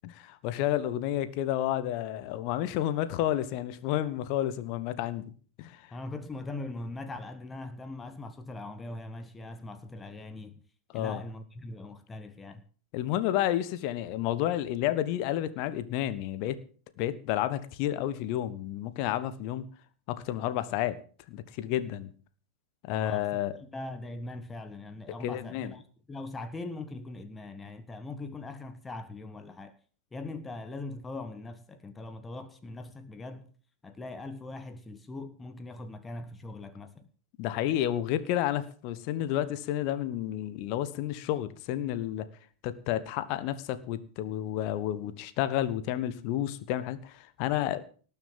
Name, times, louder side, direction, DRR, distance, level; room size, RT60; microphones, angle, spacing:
voice 1, 0.0-5.2 5.6-5.9 10.9-11.2 12.9-16.6 17.0-19.7 20.1-21.0 21.3-22.1 22.8-23.5 25.2-25.7 37.4-42.3 42.6-47.8, left 12 dB, 45° left, 1.3 m, -31 dB
voice 2, 5.9-10.6 10.9-12.6 22.9-23.4 23.7-25.8 26.1-29.7 30.1-33.5 33.8-37.1, left 2 dB, 15° left, 1.4 m, -41 dB
19.0 x 7.3 x 7.5 m
figure-of-eight pair, 90°, 0 cm